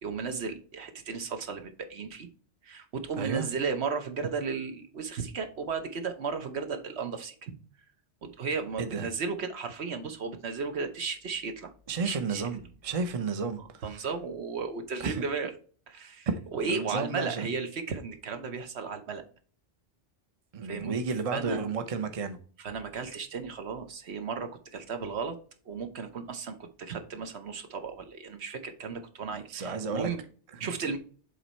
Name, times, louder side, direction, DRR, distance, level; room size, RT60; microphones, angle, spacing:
voice 1, 0.0-2.3 2.6-7.6 8.2-11.7 12.0-12.4 13.8-15.5 15.9-19.2 20.6-21.0 21.3-21.6 22.6-25.4 25.7-30.2 30.6-31.0, right 5 dB, 65° right, 1.1 m, -35 dB
voice 2, 3.1-3.5 8.8-9.1 11.9-14.0 15.0-15.2 16.3-17.5 20.5-22.4 29.3-30.1 30.5-30.6, right 4 dB, 35° right, 0.7 m, -32 dB
7.6 x 3.3 x 4.3 m
omnidirectional pair, 1.2 m